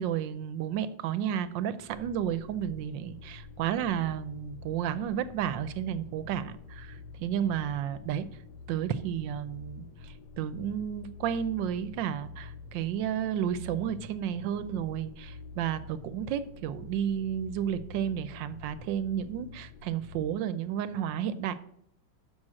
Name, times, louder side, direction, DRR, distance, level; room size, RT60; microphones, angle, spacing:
voice 1, 0.0-8.3 8.7-21.6, right 9 dB, 85° right, 13 dB, 1.3 m, -32 dB
sound 1, 1.8-20.3, left 4 dB, 70° left, 1.2 m, -47 dB
6.4 x 6.0 x 7.4 m, 0.71 s
omnidirectional pair, 1.9 m